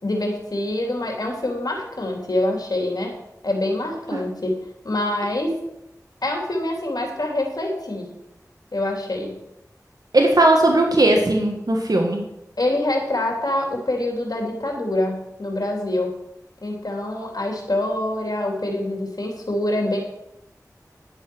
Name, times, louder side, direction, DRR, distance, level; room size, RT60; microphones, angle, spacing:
voice 1, 0.0-3.1 3.4-4.5 4.8-5.5 6.2-8.1 8.7-9.4 12.6-16.1 16.6-20.0, left 1 dB, 75° left, 1 dB, 3.1 m, -25 dB
voice 2, 10.1-12.2, right 2 dB, 75° right, 2 dB, 1.7 m, -18 dB
11.0 x 8.1 x 6.2 m, 0.83 s
wide cardioid pair, 45°, 7 cm